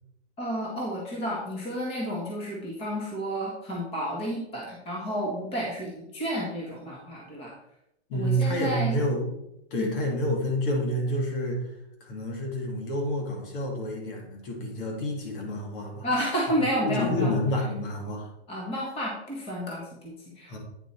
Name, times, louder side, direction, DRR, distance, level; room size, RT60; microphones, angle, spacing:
voice 1, 0.4-7.5 8.1-9.0 9.8-10.0 16.0-17.3 18.5-20.6, equal, 15° left, -3 dB, 1.7 m, -31 dB
voice 2, 8.1-9.4 9.7-11.7 12.0-16.1 16.8-18.3 20.5-20.6, equal, 50° left, 1 dB, 2.4 m, -28 dB
9.2 x 5.3 x 4.4 m, 0.82 s
hypercardioid pair, 155°, 34 cm